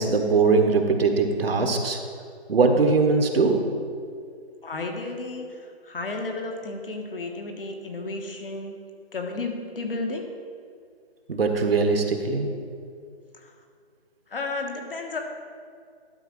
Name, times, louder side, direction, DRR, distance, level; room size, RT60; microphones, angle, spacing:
voice 1, 0.0-2.0 2.5-3.6 11.3-12.5, right 4 dB, 65° right, 5 dB, 1.1 m, -21 dB
voice 2, 4.6-8.8 9.1-10.3 13.3-13.5 14.3-15.2, left 3 dB, 60° left, 2 dB, 1.4 m, -33 dB
11.5 x 4.1 x 6.2 m, 2.2 s
hypercardioid pair, 165°, 32 cm